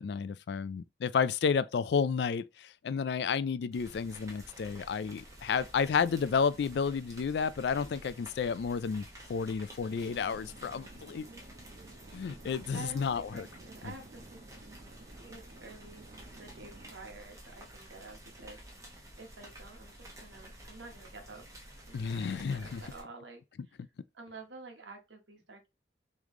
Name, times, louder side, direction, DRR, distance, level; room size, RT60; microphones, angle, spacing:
voice 1, 0.0-9.0 9.3-11.3 12.1-13.5 21.9-22.8, left 6 dB, 65° left, 0.3 m, -31 dB
sound 1, 3.7-23.0, right 1 dB, 15° right, 1.0 m, -51 dB
sound 2, 9.8-16.9, right 2 dB, 40° right, 0.5 m, -54 dB
voice 2, 12.7-14.4 14.9-16.1 16.4-18.6 19.2-21.5 21.9-23.8 24.1-25.7, right 3 dB, 80° right, 1.2 m, -50 dB
3.5 x 3.1 x 3.7 m
head